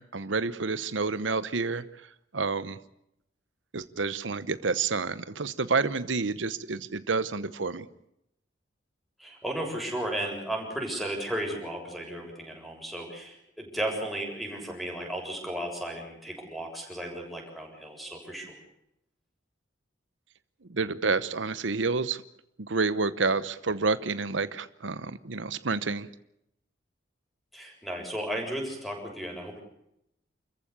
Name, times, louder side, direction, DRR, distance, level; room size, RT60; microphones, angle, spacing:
voice 1, 0.0-1.8 2.3-2.8 3.7-7.9 20.7-22.2 22.6-26.1, right 4 dB, 90° right, 14 dB, 1.0 m, -29 dB
voice 2, 9.2-18.6 27.5-29.6, right 1 dB, ahead, 1 dB, 7.0 m, -34 dB
29.5 x 15.0 x 8.4 m, 0.80 s
head